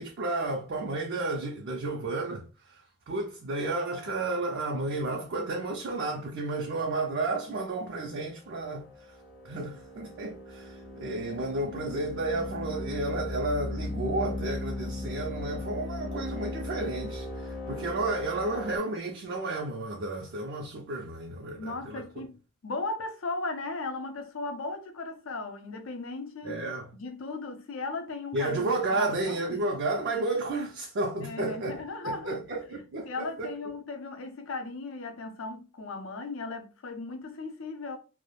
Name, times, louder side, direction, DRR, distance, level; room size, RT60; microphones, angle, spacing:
voice 1, 0.0-8.8 9.4-22.0 26.4-26.8 28.3-31.8 32.0-33.5, right 2 dB, 55° right, 0.4 m, -32 dB
sound 1, 8.7-18.8, left 2 dB, 50° left, 0.8 m, -37 dB
voice 2, 21.6-26.6 26.9-29.6 31.2-32.4 32.7-38.0, left 3 dB, 70° left, 0.5 m, -37 dB
2.3 x 2.0 x 3.0 m
head